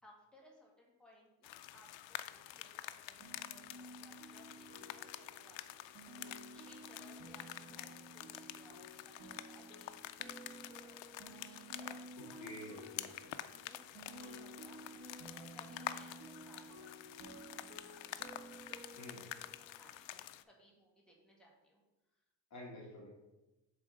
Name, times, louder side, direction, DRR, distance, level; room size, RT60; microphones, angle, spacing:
voice 1, 0.0-12.6 13.0-14.9 15.2-16.9 17.2-18.6 19.1-21.8, equal, ahead, -3 dB, 1.5 m, -64 dB
sound 1, 1.4-20.4, left 14 dB, 80° left, 0.5 m, -48 dB
sound 2, 3.2-19.9, right 1 dB, 90° right, 1.5 m, -54 dB
voice 2, 12.4-13.3 18.9-19.2 22.5-23.1, left 1 dB, 40° left, -5 dB, 1.7 m, -49 dB
7.8 x 3.7 x 4.9 m, 1.0 s
cardioid pair, 160°, 45 cm